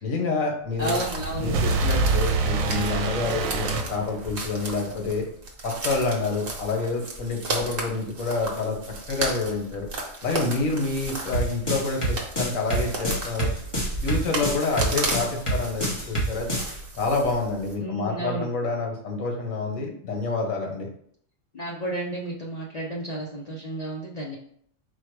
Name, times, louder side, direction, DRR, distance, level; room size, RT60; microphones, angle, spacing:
voice 1, 0.0-1.0 1.4-5.2 5.6-8.8 9.1-9.9 10.2-13.5 14.0-16.5 17.0-20.9, left 3 dB, 85° left, 1 dB, 1.4 m, -27 dB
voice 2, 0.8-1.6 17.8-18.5 21.5-24.4, right 1 dB, 45° left, -3 dB, 0.5 m, -31 dB
sound 1, 0.8-17.7, right 2 dB, 50° right, 1.1 m, -35 dB
sound 2, 0.8-4.6, right 4 dB, 85° right, 1.0 m, -26 dB
sound 3, 11.3-16.7, right 1 dB, 25° left, 1.1 m, -26 dB
4.4 x 2.3 x 4.5 m, 0.67 s
omnidirectional pair, 1.4 m